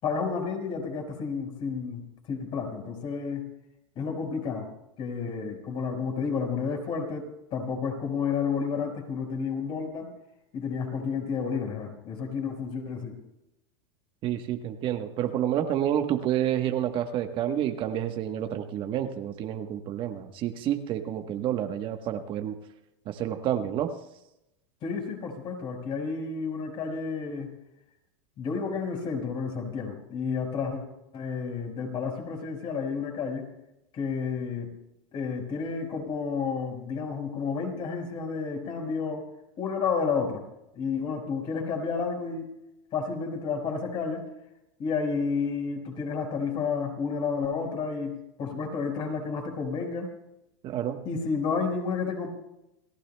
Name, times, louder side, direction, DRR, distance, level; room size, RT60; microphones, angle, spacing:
voice 1, 0.0-2.0 2.3-3.5 3.9-4.7 5.0-10.1 10.5-13.1 24.8-27.5 28.4-30.8 31.1-33.5 33.9-34.7 35.1-39.3 39.6-40.4 40.7-42.5 42.9-44.2 44.8-50.1 51.0-52.3, left 5 dB, 35° left, 3 dB, 4.8 m, -31 dB
voice 2, 14.2-22.6 23.1-23.9 50.6-51.0, right 10 dB, 35° right, 6 dB, 1.1 m, -29 dB
29.5 x 15.0 x 2.2 m, 0.87 s
supercardioid pair, 140°, 14 cm